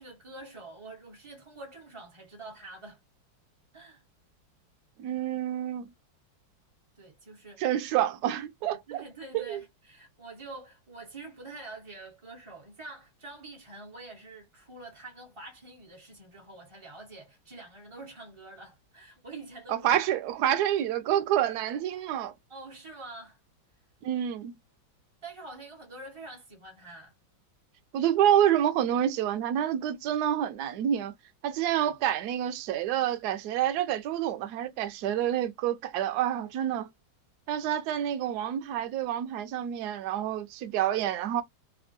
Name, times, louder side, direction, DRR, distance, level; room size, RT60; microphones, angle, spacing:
voice 1, 0.0-3.0 3.7-4.0 6.9-7.7 8.9-19.9 22.5-23.4 25.2-27.1 31.6-31.9, right 3 dB, 40° right, 0.4 m, -46 dB
voice 2, 5.0-5.9 7.6-9.0 9.3-9.6 19.7-22.3 24.0-24.6 27.9-31.1 31.4-36.9 37.5-41.4, right 11 dB, 70° right, 1.0 m, -28 dB
3.5 x 2.2 x 2.5 m
omnidirectional pair, 2.1 m